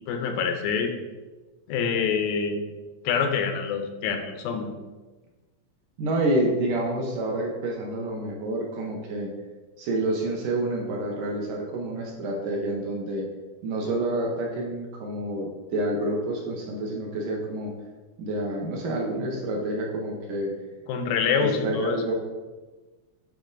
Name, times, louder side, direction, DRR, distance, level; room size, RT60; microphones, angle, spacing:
voice 1, 0.1-0.9 1.7-2.6 3.1-4.7 20.9-22.0, left 6 dB, 85° left, 5 dB, 2.4 m, -26 dB
voice 2, 6.0-9.3 9.8-13.3 13.6-17.7 18.2-20.5 21.4-22.1, right 1 dB, 70° right, -1 dB, 2.3 m, -28 dB
9.6 x 3.6 x 3.8 m, 1.2 s
omnidirectional pair, 4.1 m